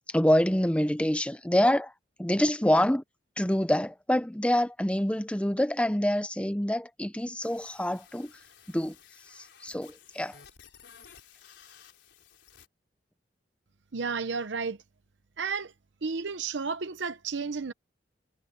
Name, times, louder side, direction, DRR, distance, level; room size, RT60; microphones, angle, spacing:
voice 1, 0.1-1.9 2.2-3.0 3.4-8.3 8.7-8.9 9.3-10.4, left 1 dB, 5° left, 0.8 m, -26 dB
sound 1, 7.4-12.7, left 8 dB, 75° left, 4.0 m, -55 dB
voice 2, 13.9-14.8 15.4-15.7 16.0-17.7, right 5 dB, 80° right, 0.8 m, -32 dB
head